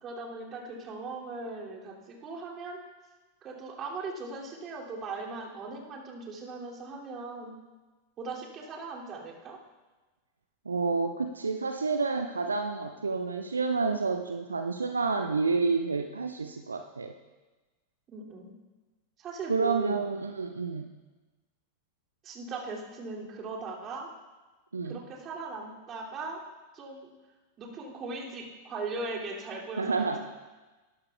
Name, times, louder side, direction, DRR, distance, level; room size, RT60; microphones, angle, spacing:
voice 1, 0.0-2.8 3.4-7.5 8.2-9.6 18.1-18.5 19.2-20.0 22.2-24.1 24.8-26.4 26.7-27.1 27.6-30.2, right 3 dB, 30° right, -3 dB, 2.7 m, -39 dB
voice 2, 10.7-17.1 19.5-20.9 24.7-25.0 29.8-30.2, right 4 dB, 75° right, 6 dB, 0.5 m, -29 dB
19.5 x 11.5 x 2.4 m, 1.2 s
figure-of-eight pair, 90°, 0 cm